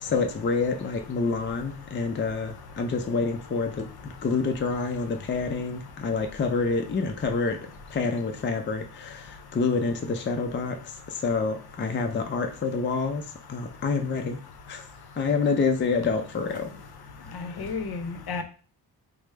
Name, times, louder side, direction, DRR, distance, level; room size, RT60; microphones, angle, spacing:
voice 1, 0.0-7.6 7.9-10.8 11.1-13.2 13.5-14.4 14.7-14.8 15.2-16.7 17.3-17.6, left 4 dB, 30° left, 4 dB, 0.4 m, -27 dB
voice 2, 17.3-18.4, left 4 dB, 70° left, 7 dB, 0.7 m, -32 dB
4.8 x 2.0 x 3.2 m, 0.38 s
wide cardioid pair, 125°, 39 cm